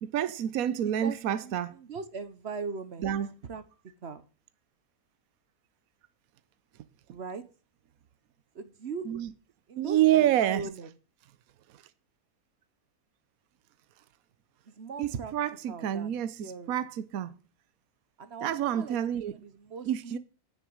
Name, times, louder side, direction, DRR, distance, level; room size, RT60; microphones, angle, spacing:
voice 1, 0.0-1.7 3.0-3.3 9.0-9.3 9.8-10.7 11.7-11.8 15.0-17.4 18.4-19.4 19.8-20.2, right 11 dB, 70° right, 1.2 m, -28 dB
voice 2, 1.9-3.1 3.5-3.6 4.0-4.2 7.1-7.4 8.5-9.0 9.7-10.9 14.8-15.3 15.7-16.1 16.4-16.7 18.2-19.0 19.4-20.2, right 5 dB, 50° right, 1.1 m, -39 dB
9.6 x 7.0 x 8.6 m
omnidirectional pair, 1.6 m